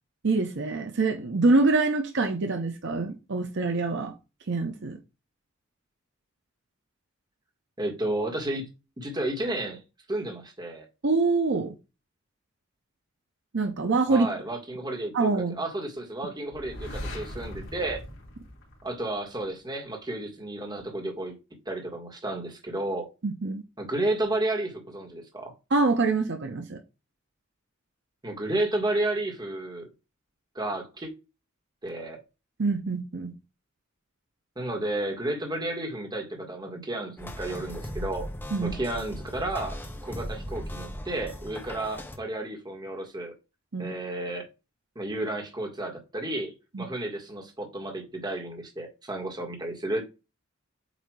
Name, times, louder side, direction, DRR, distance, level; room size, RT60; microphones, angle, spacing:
voice 1, 0.2-4.1 4.5-5.0 11.0-11.8 13.5-14.3 15.1-15.6 23.2-23.6 25.7-26.8 32.6-33.3 38.5-38.8 43.7-43.9 46.7-46.9, right 3 dB, 60° right, 0.8 m, -25 dB
voice 2, 7.8-8.7 9.0-9.8 10.1-10.9 14.1-15.3 15.6-18.0 18.8-21.4 21.6-23.1 23.8-25.5 28.2-29.9 30.5-31.1 31.8-32.2 34.5-38.3 38.6-39.8 40.0-43.3 43.8-44.5 44.9-50.1, right 1 dB, 20° right, 1.7 m, -32 dB
sound 1, 16.5-19.4, left 1 dB, 70° left, 2.8 m, -39 dB
sound 2, 37.2-42.2, equal, 10° left, 0.9 m, -38 dB
8.2 x 2.8 x 4.8 m
head